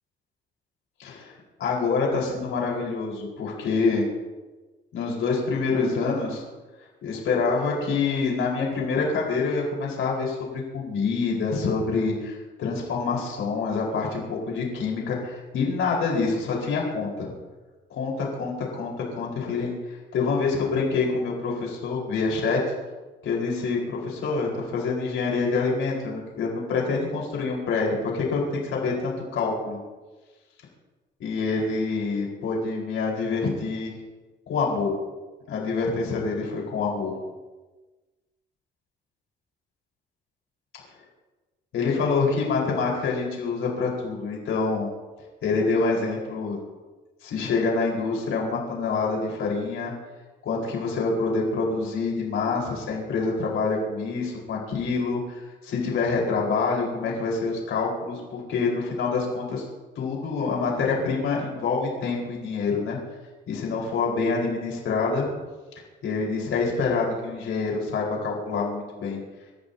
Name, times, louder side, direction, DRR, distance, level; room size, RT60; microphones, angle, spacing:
voice 1, 1.0-1.3 1.6-4.1 4.9-6.4 7.0-17.3 17.9-19.7 20.1-22.6 23.2-29.8 31.2-33.9 34.5-35.0 35.5-37.2 41.7-44.9 45.4-46.6 47.2-49.9 50.4-59.6 59.9-63.0 63.5-65.3 66.0-69.2, left 4 dB, 85° left, -3 dB, 5.0 m, -26 dB
27.5 x 14.5 x 2.9 m, 1.2 s
cardioid pair, 155°, 20 cm